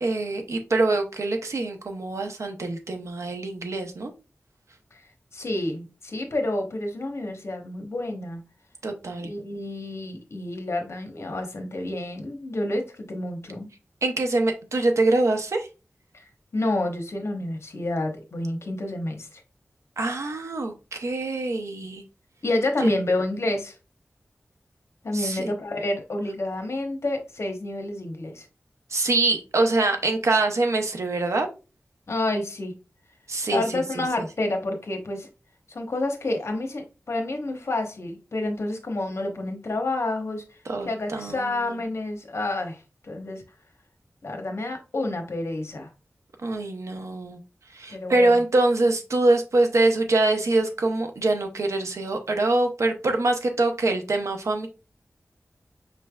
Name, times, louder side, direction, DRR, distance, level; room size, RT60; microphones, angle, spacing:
voice 1, 0.0-4.1 8.8-9.3 14.0-15.7 20.0-22.0 22.8-22.9 25.1-25.5 28.9-31.5 33.3-34.2 40.7-41.8 46.4-47.4 47.7-54.7, right 2 dB, 80° right, 0.7 m, -24 dB
voice 2, 5.3-8.4 9.2-13.7 16.1-16.2 16.5-19.4 22.4-23.8 25.0-28.5 32.1-32.7 33.5-35.3 35.7-40.4 40.9-43.4 44.2-45.9 47.9-48.4, left 2 dB, 65° left, 0.9 m, -29 dB
5.2 x 3.3 x 2.2 m
wide cardioid pair, 90°, 5 cm